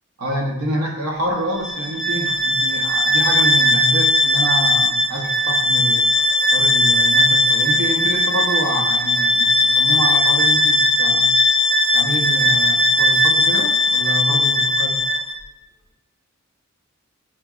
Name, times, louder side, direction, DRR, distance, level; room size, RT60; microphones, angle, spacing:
voice 1, 0.2-6.0 6.5-11.3 11.9-15.0, right 1 dB, 85° right, -1 dB, 0.9 m, -27 dB
Bowed string instrument, 1.5-15.4, left 1 dB, 15° left, 0.7 m, -18 dB
5.9 x 2.9 x 2.4 m, 0.97 s
head